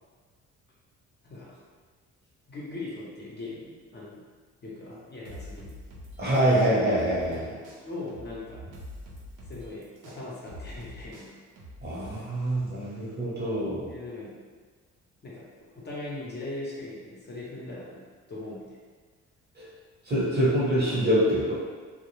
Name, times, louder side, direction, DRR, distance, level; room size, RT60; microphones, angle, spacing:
voice 1, 1.2-1.6 2.5-4.2 4.6-5.7 7.3-8.6 9.4-11.3 13.8-14.4 15.2-15.4 15.7-18.0 18.3-18.8, left 2 dB, 35° left, -6 dB, 0.7 m, -40 dB
sound 1, 5.2-7.4 7.6-12.2, equal, 80° right, 0.6 m, -45 dB
voice 2, 6.2-7.5 11.8-13.9 19.6-19.7 20.1-21.5, right 1 dB, 35° right, -7 dB, 0.9 m, -25 dB
2.3 x 2.0 x 3.0 m, 1.5 s
cardioid pair, 90°, 30 cm